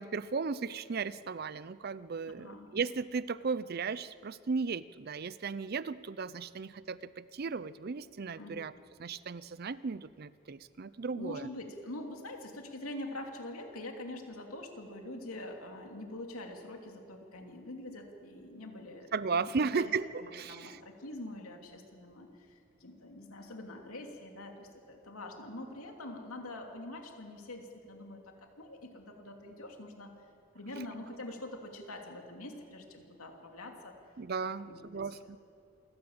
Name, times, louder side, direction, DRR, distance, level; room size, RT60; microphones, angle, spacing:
voice 1, 0.0-8.7 9.0-11.5 19.1-20.1 20.3-20.8 34.2-35.4, right 5 dB, 45° right, 17 dB, 0.5 m, -35 dB
voice 2, 2.2-2.7 8.4-8.6 11.1-19.9 20.2-30.1 30.5-34.0 34.4-35.2, left 1 dB, 85° left, 2 dB, 2.9 m, -45 dB
28.0 x 13.5 x 8.8 m, 2.7 s
head